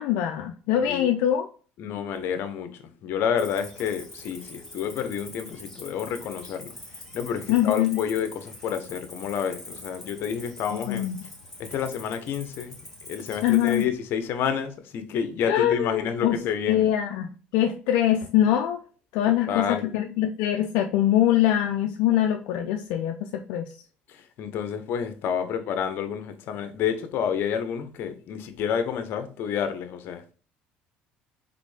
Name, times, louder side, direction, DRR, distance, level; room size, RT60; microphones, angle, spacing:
voice 1, 0.0-1.5 7.5-8.0 10.7-11.3 13.4-13.9 15.4-16.4 16.7-18.8 19.1-23.7, left 11 dB, 80° left, 0.5 m, -23 dB
voice 2, 1.8-6.7 7.1-11.1 11.6-12.8 13.1-16.9 19.4-19.9 24.1-30.3, left 7 dB, 65° left, 0.9 m, -29 dB
Cricket, 3.4-13.8, left 1 dB, 10° left, 2.0 m, -44 dB
4.1 x 3.7 x 3.4 m
supercardioid pair, 90°, 4 cm